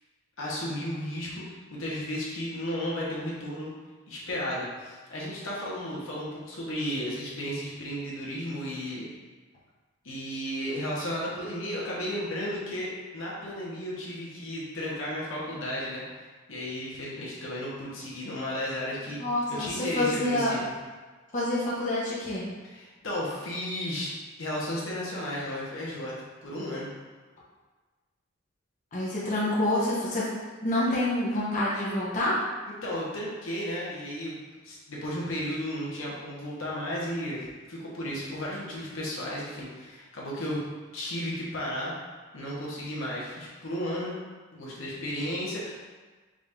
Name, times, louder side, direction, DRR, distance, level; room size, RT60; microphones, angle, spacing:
voice 1, 0.4-1.4 1.7-3.7 4.1-9.1 10.0-19.2 19.6-20.7 22.6-24.1 24.4-26.1 26.4-26.9 32.8-34.4 34.6-40.6 40.9-41.9 42.3-44.2 44.5-45.8, equal, 80° left, -5 dB, 1.2 m, -34 dB
voice 2, 19.2-20.5 21.3-22.4 28.9-30.3 30.6-32.4, left 1 dB, 40° left, -7 dB, 0.9 m, -27 dB
5.0 x 2.6 x 3.6 m, 1.3 s
head